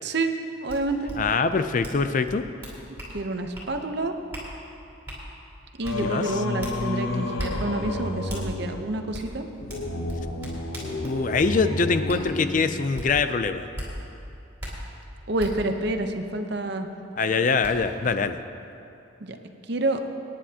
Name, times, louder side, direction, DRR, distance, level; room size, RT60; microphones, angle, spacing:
voice 1, 0.0-1.1 3.1-4.1 5.8-9.4 15.3-16.9 19.2-19.4 19.7-20.0, right 2 dB, 55° right, 6 dB, 0.8 m, -28 dB
sound 1, 0.7-0.8 1.0-1.2 1.8-2.0 2.2-3.1 3.5-3.7 4.3-4.5 5.1-5.2 5.8-6.0 6.6-6.7 7.4-7.5 8.3-8.4 9.1-9.3 9.7-11.5 12.1-12.2 12.9-13.1 13.7-13.9 14.6-14.7 15.4-15.5 17.0-17.1 17.6-17.7, equal, 10° right, 3.4 m, -36 dB
voice 2, 1.2-2.4 6.0-6.3 11.0-13.7 17.2-18.4, left 4 dB, 40° left, 10 dB, 0.4 m, -24 dB
Singing, 5.8-13.2, left 2 dB, 85° left, 1.0 m, -31 dB
25.5 x 10.0 x 2.9 m, 2.7 s
head